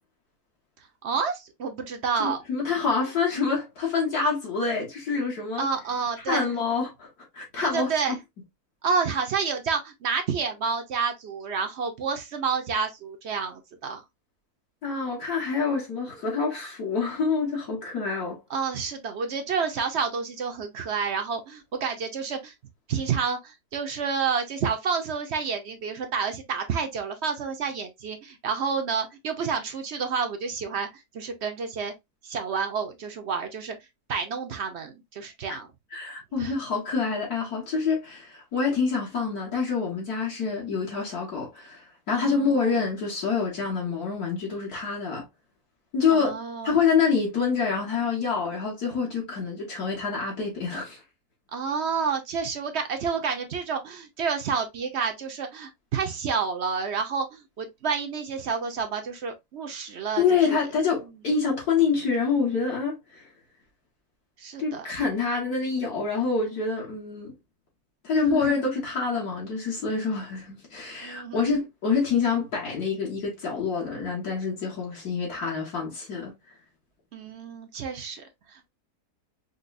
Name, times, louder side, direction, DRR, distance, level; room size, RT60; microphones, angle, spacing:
voice 1, 1.0-2.4 5.6-6.5 7.7-8.2 8.8-14.0 18.5-22.5 22.9-31.9 32.2-33.8 34.1-35.7 36.4-36.6 42.1-42.7 46.1-46.8 51.5-60.2 64.4-64.9 68.3-68.6 71.0-71.5 77.1-78.7, right 5 dB, 60° right, 0.7 m, -29 dB
voice 2, 2.2-5.7 6.3-8.2 14.8-18.4 35.5-35.6 35.9-45.3 45.9-46.4 46.6-51.0 60.2-63.3 64.6-67.3 68.0-76.3, left 5 dB, 70° left, 1.8 m, -27 dB
5.2 x 2.2 x 2.5 m
omnidirectional pair, 1.7 m